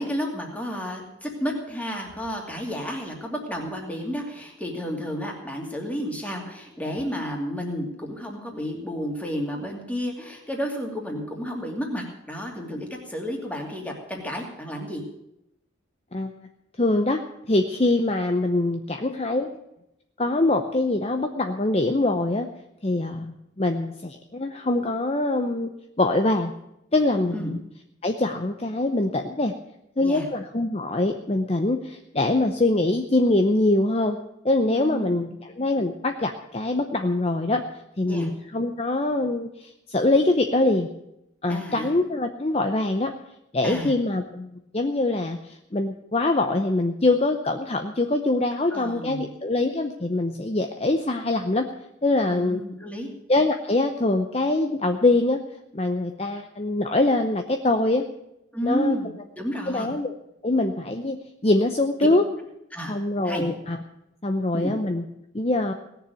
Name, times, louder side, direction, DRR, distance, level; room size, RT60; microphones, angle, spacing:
voice 1, 0.0-15.0 27.3-27.5 30.0-30.3 34.7-35.4 38.0-38.3 41.5-41.9 43.6-43.9 48.7-49.3 52.3-53.1 58.5-59.1 59.4-59.9 62.7-63.0 63.2-63.4 64.5-64.7, equal, 5° left, 0 dB, 2.5 m, -31 dB
voice 2, 16.8-17.2 17.5-19.5 20.2-22.5 22.8-25.7 26.0-26.5 26.9-27.6 28.0-29.5 30.0-34.2 34.4-37.6 38.0-40.9 41.4-43.1 43.5-44.5 44.7-51.7 52.0-52.6 53.3-55.4 55.7-58.0 58.6-59.1 59.7-60.1 60.4-61.2 61.4-62.2 62.9-63.8 64.2-65.0 65.3-65.7, left 2 dB, 30° left, 6 dB, 0.7 m, -23 dB
18.5 x 6.9 x 9.1 m, 0.85 s
head